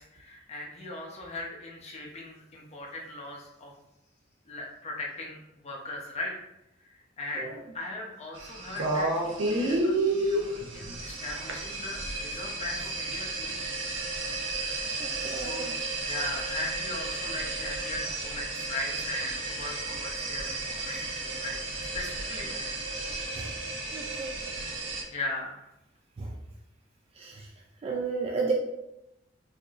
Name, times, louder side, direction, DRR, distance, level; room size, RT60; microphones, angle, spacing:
voice 1, 0.0-3.7 4.5-6.3 6.8-7.5 7.7-13.6 15.3-15.8 16.0-22.7 25.1-25.7, left 2 dB, 35° left, -2 dB, 0.7 m, -39 dB
sound 1, 8.4-25.0, right 2 dB, 85° right, 0.7 m, -32 dB
voice 2, 15.0-15.8 23.4-23.5 23.9-24.4 26.2-26.3 27.2-27.5 27.8-28.5, right 4 dB, 30° right, 0 dB, 0.3 m, -33 dB
4.6 x 2.6 x 2.4 m, 0.88 s
head